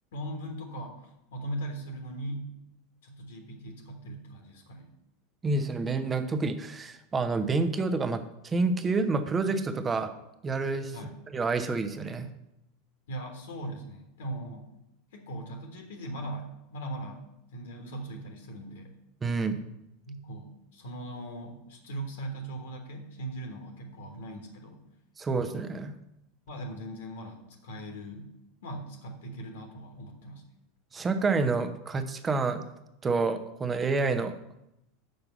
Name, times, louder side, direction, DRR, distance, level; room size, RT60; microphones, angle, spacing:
voice 1, 0.1-2.5 3.0-4.9 10.9-11.2 13.1-14.7 15.1-17.2 17.5-18.9 20.1-24.8 26.5-28.3 28.6-30.4, right 1 dB, 65° left, 4 dB, 1.4 m, -39 dB
voice 2, 5.4-10.1 10.4-10.9 11.3-12.3 19.2-19.6 25.2-25.9 30.9-32.6 33.0-34.3, right 3 dB, 20° right, 8 dB, 0.8 m, -28 dB
6.6 x 5.9 x 6.9 m, 0.87 s
figure-of-eight pair, 80°, 0 cm